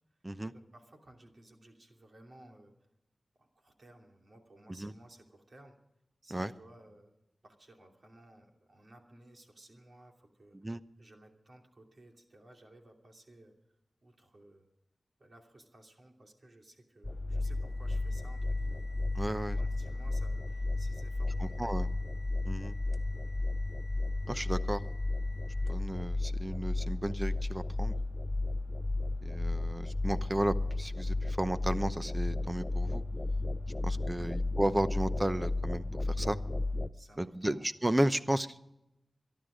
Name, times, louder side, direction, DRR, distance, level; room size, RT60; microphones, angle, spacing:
voice 1, 0.1-2.7 3.4-5.7 6.2-7.1 7.4-10.7 11.0-13.5 14.0-14.7 15.2-18.9 19.4-21.9 34.1-34.4 36.9-37.6, right 1 dB, 55° right, 2 dB, 2.8 m, -57 dB
sound 1, 17.0-36.9, left 2 dB, 25° left, 0.6 m, -33 dB
sound 2, 17.4-26.0, left 4 dB, 85° left, 1.0 m, -56 dB
voice 2, 19.1-19.6 21.4-21.9 22.5-22.7 24.3-24.8 25.7-27.9 29.2-33.0 33.8-36.4 37.2-38.6, right 1 dB, 20° right, 12 dB, 0.8 m, -33 dB
24.0 x 11.5 x 5.1 m, 0.90 s
wide cardioid pair, 75°, 0 cm